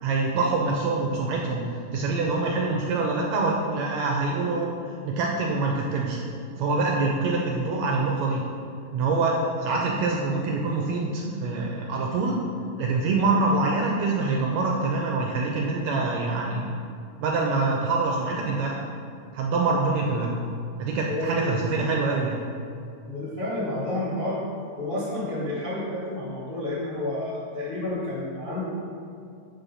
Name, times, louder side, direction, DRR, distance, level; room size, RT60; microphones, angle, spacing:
voice 1, 0.0-4.7 5.0-6.2 6.6-8.4 8.9-12.4 12.8-16.7 17.2-18.8 19.3-20.3 20.8-22.4, right 3 dB, 75° right, -1 dB, 1.7 m, -25 dB
voice 2, 21.1-21.8 23.0-24.4 24.8-28.7, left 1 dB, 40° left, -8 dB, 0.9 m, -30 dB
8.3 x 3.7 x 5.5 m, 2.5 s
omnidirectional pair, 3.7 m